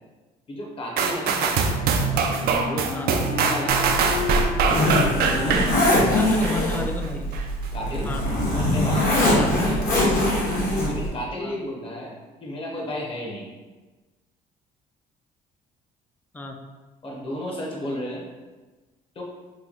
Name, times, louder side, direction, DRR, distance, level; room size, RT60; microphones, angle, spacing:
voice 1, 0.5-1.7 2.6-4.3 5.2-6.2 7.7-10.1 10.9-12.1 12.4-13.5 17.0-18.2 19.1-19.2, left 1 dB, 30° left, -2 dB, 0.9 m, -33 dB
sound 1, 1.0-6.8 7.3-7.4, right 5 dB, 65° right, 0.4 m, -23 dB
Wind instrument woodwind instrument, 1.2-7.3, left 5 dB, 85° left, 0.8 m, -34 dB
voice 2, 2.9-3.3 5.9-7.4 8.1-8.2 9.3-9.6 11.4-11.6 16.3-16.6, left 2 dB, 10° left, 3 dB, 0.3 m, -33 dB
Zipper (clothing), 3.7-11.1, left 1 dB, 55° left, 1.1 m, -23 dB
3.2 x 2.2 x 3.8 m, 1.2 s
cardioid pair, 110°, 17 cm